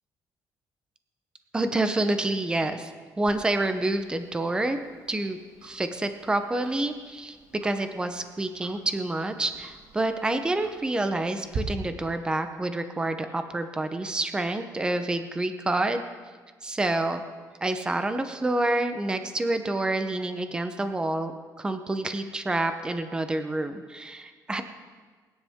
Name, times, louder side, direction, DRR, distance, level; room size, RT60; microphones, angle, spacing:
voice 1, 1.5-2.9 3.2-4.8 5.1-7.4 7.6-16.0 16.6-17.2 17.6-21.3 21.6-24.6, right 2 dB, 10° right, 8 dB, 0.8 m, -28 dB
Tick-tock, 3.3-11.6, right 4 dB, 45° right, 2.0 m, -46 dB
22.5 x 10.5 x 3.6 m, 1.5 s
cardioid pair, 155°, 7 cm